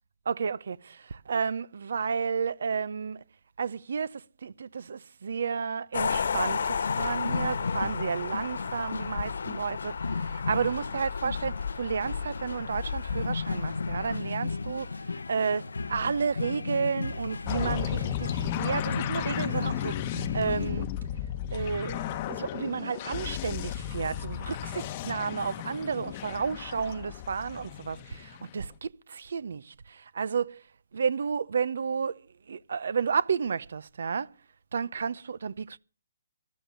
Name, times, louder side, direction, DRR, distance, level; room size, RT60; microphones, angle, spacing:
voice 1, 0.3-3.2 3.6-14.9 15.3-20.9 21.5-30.6 30.9-32.2 32.5-34.3 34.7-35.8, right 6 dB, 65° right, 0.7 m, -32 dB
sound 1, 5.9-14.2, left 6 dB, 65° left, 1.4 m, -33 dB
sound 2, 6.8-20.7, left 4 dB, 85° left, 0.9 m, -35 dB
sound 3, 17.5-28.6, left 11 dB, 35° left, 0.9 m, -34 dB
14.5 x 12.5 x 6.8 m
hypercardioid pair, 145°, 0 cm